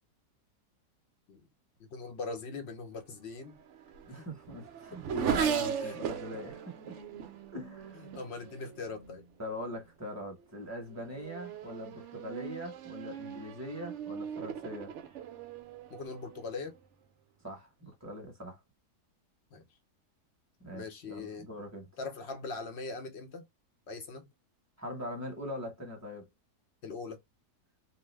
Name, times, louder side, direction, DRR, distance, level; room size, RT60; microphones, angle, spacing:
voice 1, 1.8-3.6 4.1-4.3 5.8-6.0 7.9-9.2 15.9-16.8 19.5-19.6 20.7-21.5 22.0-23.5 23.9-24.3 26.8-27.2, left 4 dB, 65° left, 0.7 m, -41 dB
Race car auto racing / Accelerating revving vroom, 3.4-9.3 10.1-10.4 10.9-16.8, right 8 dB, 70° right, 0.7 m, -38 dB
voice 2, 4.1-6.9 7.5-8.0 9.4-14.9 17.4-18.6 20.6-21.9 24.8-26.3, equal, 10° right, 0.9 m, -41 dB
2.8 x 2.0 x 3.2 m
omnidirectional pair, 1.7 m